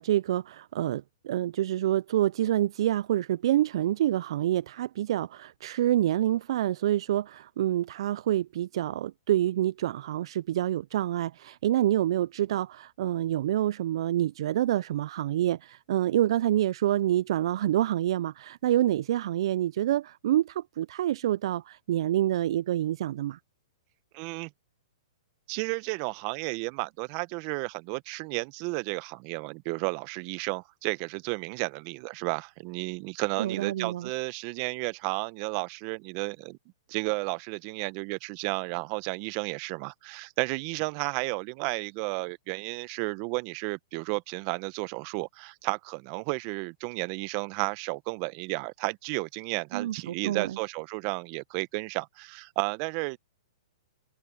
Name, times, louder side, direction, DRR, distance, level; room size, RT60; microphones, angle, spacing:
voice 1, 0.0-23.4 33.4-34.1 49.7-50.6, right 12 dB, 60° right, 0.4 m, -27 dB
voice 2, 24.1-24.5 25.5-36.6 36.9-53.2, right 28 dB, 40° right, 1.1 m, -32 dB
hypercardioid pair, 130°, 3 cm